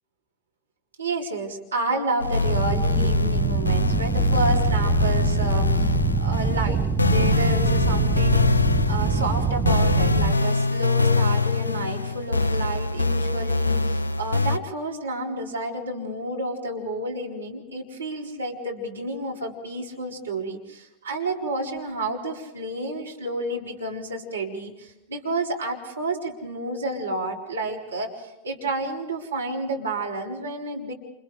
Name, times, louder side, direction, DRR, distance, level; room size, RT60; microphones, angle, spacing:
voice 1, 1.0-8.5 8.9-30.9, right 2 dB, 75° right, -2 dB, 4.1 m, -30 dB
sound 1, 2.2-14.6, left 3 dB, 80° left, 0.6 m, -23 dB
sound 2, 2.4-10.3, right 6 dB, 15° right, 0.8 m, -25 dB
28.5 x 28.5 x 3.3 m, 0.99 s
figure-of-eight pair, 90°, 0 cm